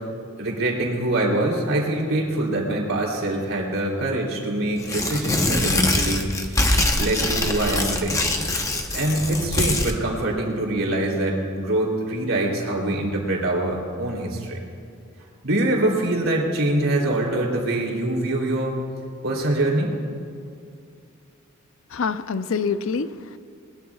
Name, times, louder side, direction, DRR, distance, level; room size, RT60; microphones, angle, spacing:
voice 1, 0.4-6.3 7.0-8.2 8.9-14.6 15.4-18.8 19.2-19.9, right 1 dB, 80° right, -2 dB, 3.1 m, -24 dB
Tearing, 4.8-10.0, left 2 dB, 15° left, 0.9 m, -23 dB
voice 2, 21.9-23.4, left 5 dB, 75° left, 12 dB, 0.5 m, -26 dB
20.5 x 20.5 x 2.4 m, 2.3 s
head